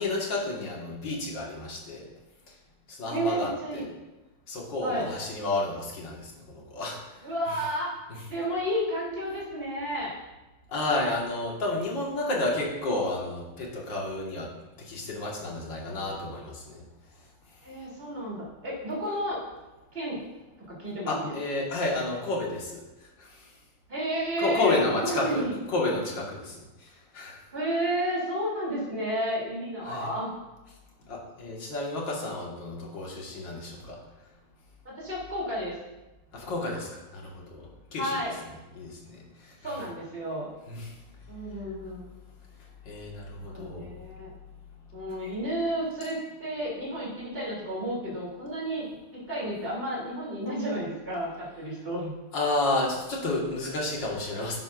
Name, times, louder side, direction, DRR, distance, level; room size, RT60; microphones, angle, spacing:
voice 1, 0.0-2.0 2.9-3.8 4.5-7.0 7.5-7.6 8.1-8.2 10.7-14.5 14.8-16.8 21.1-22.8 23.2-23.4 24.4-26.6 27.1-27.4 29.8-30.1 31.1-34.0 36.3-38.1 38.8-39.5 40.7-40.9 42.9-43.9 52.3-54.6, left 2 dB, 60° left, -2 dB, 2.4 m, -31 dB
voice 2, 3.1-3.8 4.8-5.1 7.2-7.9 8.3-10.2 17.6-19.4 19.9-20.2 20.7-21.3 23.9-25.5 27.5-30.3 34.8-35.8 37.9-38.4 39.6-40.5 41.3-42.1 43.5-44.3 44.9-52.1, equal, 25° right, -5 dB, 3.4 m, -31 dB
11.0 x 10.5 x 2.6 m, 1.1 s
omnidirectional pair, 2.4 m